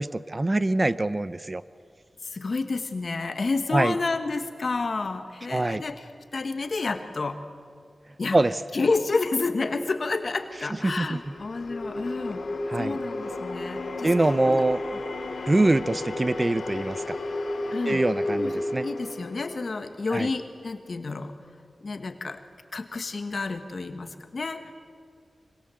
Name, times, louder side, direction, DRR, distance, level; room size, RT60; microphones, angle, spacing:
voice 1, 0.0-1.6 3.7-3.9 5.5-5.8 8.3-8.6 10.8-11.2 12.7-13.0 14.0-14.8 15.5-17.2 17.9-18.8 20.1-20.3, right 2 dB, 30° right, 15 dB, 0.6 m, -24 dB
voice 2, 2.2-7.4 8.2-8.4 8.7-12.4 12.8-14.1 14.5-14.6 17.7-21.3 21.8-22.4 22.7-24.7, left 3 dB, 60° left, 8 dB, 1.4 m, -30 dB
sound 1, 10.1-20.5, left 2 dB, 85° left, 2.8 m, -33 dB
25.0 x 24.5 x 7.7 m, 2.2 s
wide cardioid pair, 80°, 0 cm